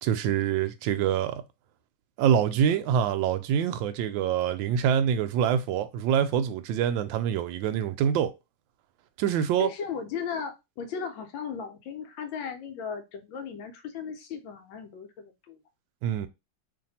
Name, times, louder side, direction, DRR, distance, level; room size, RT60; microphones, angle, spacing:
voice 1, 0.0-1.4 2.2-8.3 9.2-9.7 16.0-16.3, right 9 dB, 80° right, 1.3 m, -25 dB
voice 2, 9.3-15.6, left 6 dB, 80° left, 1.4 m, -36 dB
3.2 x 2.6 x 4.1 m
omnidirectional pair, 2.2 m